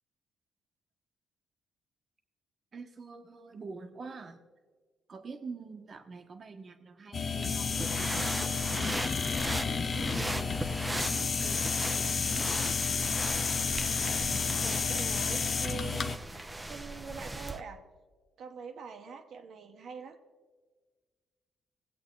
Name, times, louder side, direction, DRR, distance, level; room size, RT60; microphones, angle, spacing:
voice 1, 2.7-4.4 5.1-9.0 9.9-13.3, right 4 dB, 45° right, 6 dB, 1.2 m, -46 dB
sound 1, 7.1-16.2, left 5 dB, 45° left, 0.7 m, -31 dB
sound 2, 7.7-17.6, right 1 dB, 15° right, 0.7 m, -38 dB
voice 2, 14.6-17.8 18.4-20.2, right 5 dB, 65° right, 6 dB, 1.2 m, -44 dB
19.0 x 7.9 x 3.9 m, 1.4 s
cardioid pair, 90°, 0 cm